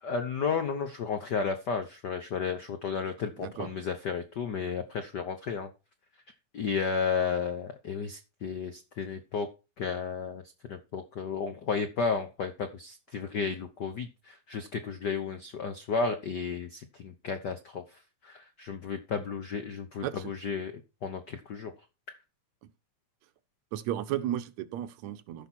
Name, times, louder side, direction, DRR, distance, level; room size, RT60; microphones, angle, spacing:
voice 1, 0.0-5.7 6.5-9.5 9.8-10.4 10.7-17.8 18.2-21.7 22.1-22.2, left 5 dB, 80° left, 0.9 m, -33 dB
voice 2, 23.7-25.5, right 12 dB, 75° right, 1.9 m, -34 dB
14.0 x 5.9 x 4.4 m
omnidirectional pair, 3.3 m